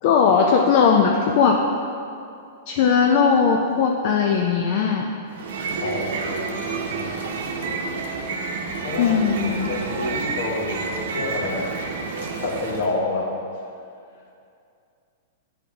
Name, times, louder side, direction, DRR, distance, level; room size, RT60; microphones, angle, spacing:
voice 1, 0.0-1.6 2.7-5.1 9.0-9.7, left 6 dB, 55° left, 1 dB, 0.5 m, -18 dB
sound 1, 5.3-12.9, right 4 dB, 70° right, 0.8 m, -29 dB
voice 2, 5.8-7.2 8.8-9.4 9.7-11.8 12.2-13.4, left 2 dB, 70° left, -1 dB, 1.2 m, -29 dB
9.1 x 3.6 x 3.4 m, 2.5 s
hypercardioid pair, 125°, 0 cm